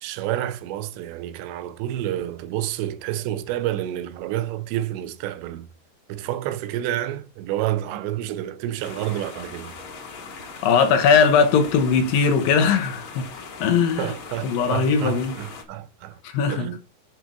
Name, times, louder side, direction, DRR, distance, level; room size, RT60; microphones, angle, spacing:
voice 1, 0.0-5.7 6.1-9.7 14.0-16.2 16.5-16.8, right 13 dB, 90° right, 3.0 m, -29 dB
sound 1, 8.8-15.6, left 4 dB, 55° left, 2.3 m, -39 dB
voice 2, 10.6-13.2 13.6-14.1 14.4-15.3 16.2-16.7, left 6 dB, 70° left, 2.4 m, -19 dB
7.5 x 6.0 x 5.3 m
omnidirectional pair, 5.0 m